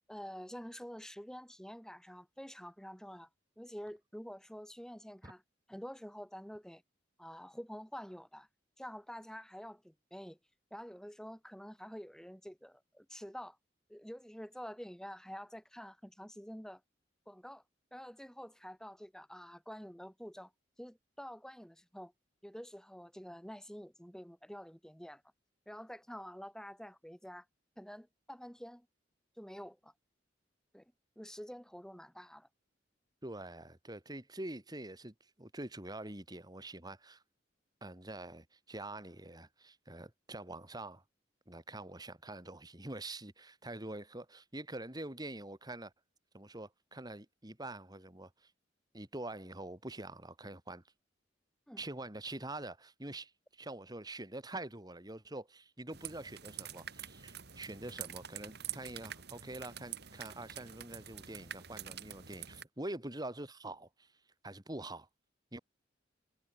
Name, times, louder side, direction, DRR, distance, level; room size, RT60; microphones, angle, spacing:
voice 1, 0.1-3.3 3.6-5.4 5.7-6.8 7.2-8.5 8.8-10.4 10.7-13.6 13.9-16.8 17.3-17.6 17.9-20.5 20.8-22.1 22.4-25.2 25.7-27.4 27.8-28.9 29.4-29.9 30.7-30.8 31.2-32.5 51.7-51.8, equal, 5° left, 4.7 m, -48 dB
voice 2, 33.2-37.2 37.8-41.0 41.5-45.9 46.3-48.5 48.9-50.8 51.8-64.1 64.4-65.1 65.5-65.6, right 2 dB, 20° right, 2.9 m, -45 dB
sound 1, 55.9-62.6, right 10 dB, 60° right, 4.2 m, -46 dB
head